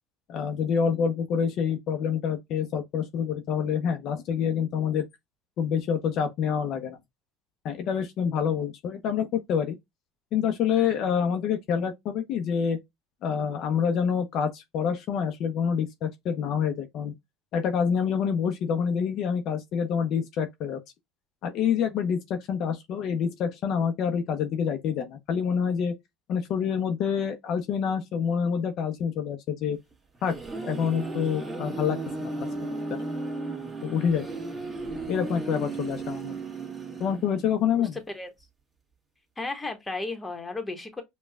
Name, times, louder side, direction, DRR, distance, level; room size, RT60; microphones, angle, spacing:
voice 1, 0.3-5.1 5.6-7.0 7.6-9.8 10.3-12.8 13.2-17.1 17.5-20.8 21.4-25.9 26.3-29.8 30.2-30.3 30.6-32.3 33.8-34.3 35.0-36.4 37.0-38.0, left 7 dB, 55° left, 0.6 m, -27 dB
sound 1, 29.9-37.6, right 2 dB, 15° right, 1.4 m, -35 dB
voice 2, 37.7-38.3 39.4-41.0, left 3 dB, 15° left, 1.1 m, -34 dB
5.3 x 2.3 x 2.2 m
supercardioid pair, 95°, 0 cm